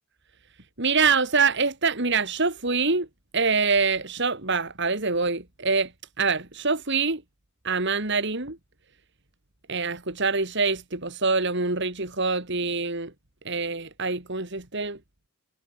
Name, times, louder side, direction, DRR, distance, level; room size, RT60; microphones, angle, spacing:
voice 1, 0.8-3.1 3.3-5.9 6.2-7.2 7.6-8.6 9.7-13.1 13.4-15.0, right 4 dB, 55° right, 3.3 m, -25 dB
head